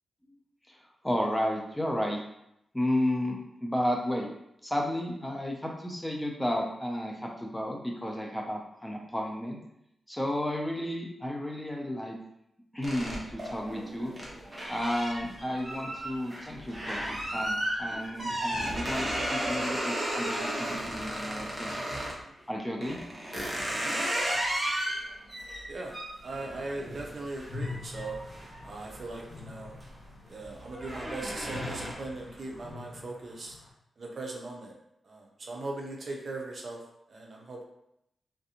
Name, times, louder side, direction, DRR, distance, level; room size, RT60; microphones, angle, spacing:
voice 1, 1.0-2.2 2.7-4.3 4.6-9.6 10.1-12.2 12.7-14.1 14.7-21.8 22.5-23.0, left 1 dB, 10° left, 0 dB, 0.4 m, -32 dB
sound 1, 12.8-22.2 22.8-29.2 29.6-30.0 30.3-32.2, right 1 dB, 20° right, 0.8 m, -34 dB
voice 2, 26.2-28.2 28.6-29.7 30.3-33.6 34.0-34.7 35.0-36.8 37.1-37.6, right 2 dB, 50° right, 0 dB, 0.6 m, -39 dB
sound 2, 27.4-33.7, left 3 dB, 70° left, 0.7 m, -44 dB
3.2 x 2.5 x 2.8 m, 0.80 s
wide cardioid pair, 115°, 0 cm